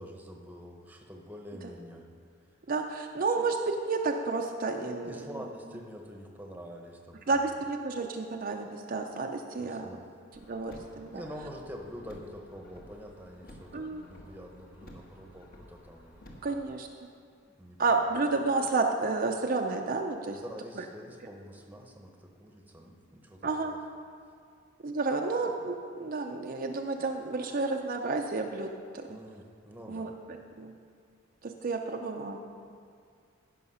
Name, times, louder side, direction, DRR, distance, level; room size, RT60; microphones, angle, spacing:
voice 1, 0.0-2.1 5.0-7.6 9.6-10.1 11.1-16.2 17.6-18.2 20.3-23.8 29.1-30.1, equal, 10° right, 2 dB, 0.9 m, -46 dB
voice 2, 2.7-5.3 7.3-9.9 10.5-11.2 13.7-14.0 16.4-16.9 17.8-20.4 23.4-23.7 24.8-28.7 28.9-29.2 29.9-30.1 30.6-30.8 31.4-32.4, right 3 dB, 45° right, 2 dB, 0.5 m, -31 dB
Car, 10.3-16.7, equal, 50° left, 1.4 m, -52 dB
15.5 x 5.7 x 5.6 m, 2.3 s
head